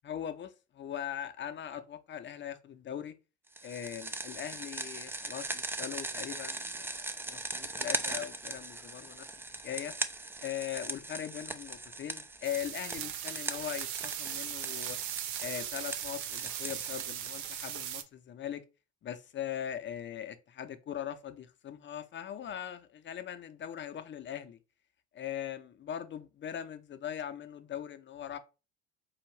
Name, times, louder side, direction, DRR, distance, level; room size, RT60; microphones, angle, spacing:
voice 1, 0.0-3.1 3.6-9.3 9.6-9.9 10.4-15.0 15.4-18.6 19.0-24.6 25.1-28.4, left 10 dB, 35° left, 0.6 m, -40 dB
sound 1, 3.6-17.9, right 2 dB, 5° right, 0.4 m, -40 dB
sound 2, 12.4-18.0, right 10 dB, 60° right, 0.6 m, -38 dB
4.7 x 2.5 x 3.2 m
hypercardioid pair, 60°, 34 cm